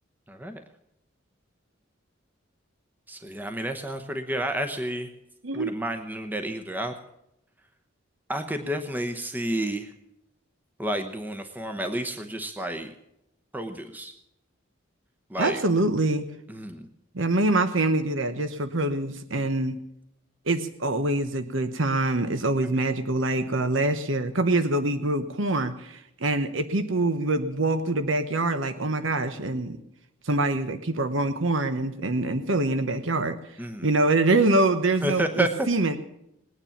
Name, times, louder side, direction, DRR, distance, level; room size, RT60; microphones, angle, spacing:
voice 1, 0.3-0.6 3.1-5.1 5.5-6.9 8.3-9.9 10.8-12.9 13.5-14.1 15.3-15.6 16.5-16.9 33.6-33.9 35.0-35.7, right 1 dB, 10° right, 6 dB, 0.9 m, -30 dB
voice 2, 15.4-16.2 17.1-19.8 20.5-29.8 30.2-33.4 33.8-36.0, right 2 dB, 75° right, 10 dB, 1.1 m, -25 dB
20.0 x 9.7 x 7.2 m, 0.83 s
head